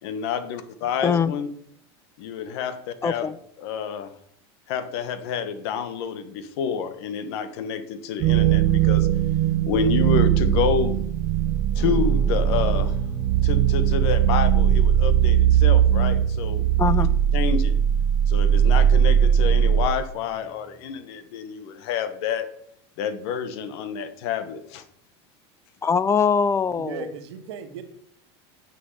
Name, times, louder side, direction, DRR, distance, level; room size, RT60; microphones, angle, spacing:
voice 1, 0.0-1.5 2.2-3.3 3.6-4.1 4.7-9.1 9.7-11.0 11.7-12.9 13.4-16.7 17.3-17.7 18.3-22.5 23.0-24.8, left 7 dB, 70° left, 11 dB, 1.2 m, -28 dB
voice 2, 1.0-1.3 3.0-3.4 16.8-17.1 25.8-27.1, left 6 dB, 20° left, 18 dB, 0.4 m, -22 dB
sound 1, 8.2-19.9, right 9 dB, 55° right, 0.5 m, -19 dB
Guitar, 11.8-21.0, equal, 5° right, 3.0 m, -43 dB
voice 3, 26.8-27.8, right 6 dB, 85° right, 7 dB, 1.5 m, -36 dB
9.5 x 6.3 x 4.9 m, 0.67 s
supercardioid pair, 115°, 14 cm